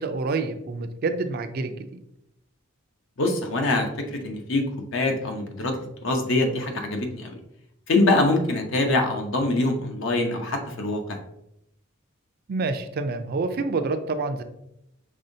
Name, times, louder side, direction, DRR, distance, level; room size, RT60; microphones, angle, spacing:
voice 1, 0.0-2.0 12.5-14.4, right 3 dB, 45° right, 8 dB, 0.4 m, -27 dB
voice 2, 3.2-5.8 6.0-7.3 7.9-11.2, left 2 dB, 65° left, 4 dB, 0.7 m, -24 dB
5.4 x 3.5 x 2.6 m, 0.82 s
head